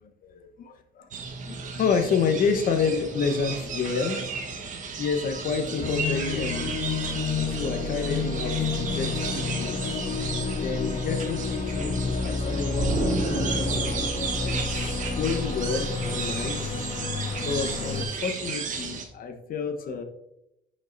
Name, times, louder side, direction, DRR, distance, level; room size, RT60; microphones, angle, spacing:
sound 1, 1.1-19.0, right 5 dB, 50° right, 1.2 m, -34 dB
voice 1, 1.4-4.3 5.0-6.8 7.2-10.0 10.6-13.9 14.4-16.9 17.4-20.0, left 5 dB, 55° left, 7 dB, 1.1 m, -29 dB
sound 2, 5.8-18.1, left 4 dB, 40° left, 0.8 m, -30 dB
Explosion, 12.8-15.5, right 2 dB, 70° right, 2.5 m, -31 dB
11.0 x 5.5 x 2.6 m, 0.83 s
cardioid pair, 110°, 17 cm